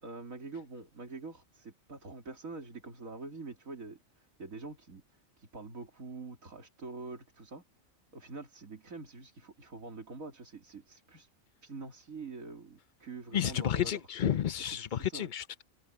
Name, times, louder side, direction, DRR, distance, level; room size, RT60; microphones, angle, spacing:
voice 1, 0.0-7.6 8.1-11.3 11.6-14.0 14.6-15.3, right 3 dB, 85° right, 3.4 m, -45 dB
voice 2, 13.3-15.6, left 9 dB, 45° left, 0.7 m, -31 dB
omnidirectional pair, 1.4 m